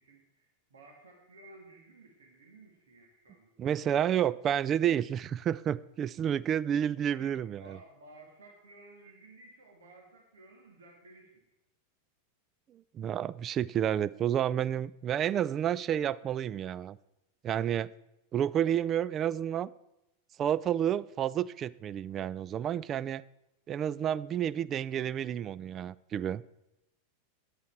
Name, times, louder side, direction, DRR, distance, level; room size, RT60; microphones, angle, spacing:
voice 1, 0.0-3.5 7.1-11.4, right 2 dB, 75° right, 1 dB, 1.9 m, -55 dB
voice 2, 3.6-7.8 12.9-17.0 17.4-17.9 18.3-19.7 20.4-23.2 23.7-26.4, right 10 dB, 35° right, 19 dB, 0.3 m, -30 dB
9.9 x 8.4 x 4.5 m, 0.89 s
hypercardioid pair, 95°, 0 cm